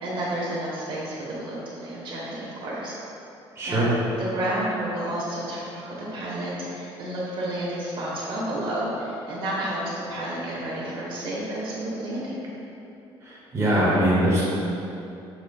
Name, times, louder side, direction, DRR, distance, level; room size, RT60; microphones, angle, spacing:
voice 1, 0.0-2.9 3.6-3.8 4.2-12.3, right 1 dB, 55° right, -6 dB, 1.2 m, -30 dB
voice 2, 3.5-4.0 13.2-14.4, right 1 dB, 25° right, -8 dB, 0.9 m, -22 dB
6.4 x 3.0 x 2.3 m, 2.8 s
cardioid pair, 105°, 10 cm